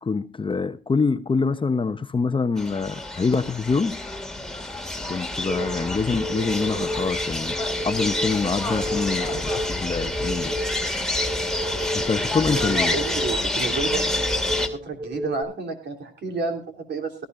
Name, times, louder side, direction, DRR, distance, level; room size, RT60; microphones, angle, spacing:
voice 1, 0.0-4.0 5.1-7.6 7.8-10.6 11.9-13.0, left 4 dB, 25° left, 0.8 m, -25 dB
sound 1, 2.6-14.7, left 2 dB, 5° left, 2.3 m, -28 dB
sound 2, 5.4-15.4, equal, 30° right, 7.0 m, -32 dB
voice 2, 12.5-17.1, right 4 dB, 60° right, 3.5 m, -31 dB
17.5 x 14.5 x 2.6 m
cardioid pair, 90°, 20 cm